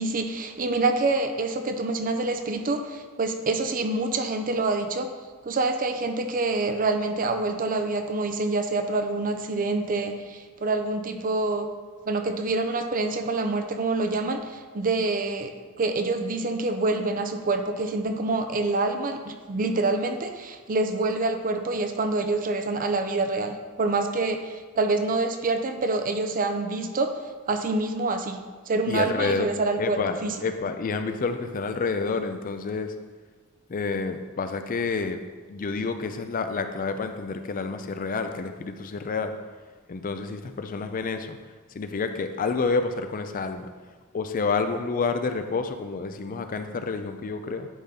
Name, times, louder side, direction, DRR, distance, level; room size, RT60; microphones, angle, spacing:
voice 1, 0.0-5.1 5.5-11.7 12.1-15.5 15.8-27.1 27.5-28.4 28.7-30.3, right 3 dB, 40° right, 7 dB, 0.6 m, -26 dB
voice 2, 28.9-29.5 29.8-32.9 33.7-35.2 35.5-39.4 39.9-41.4 41.7-43.7 44.1-47.7, left 4 dB, 40° left, 8 dB, 0.4 m, -29 dB
10.0 x 3.9 x 4.2 m, 1.4 s
head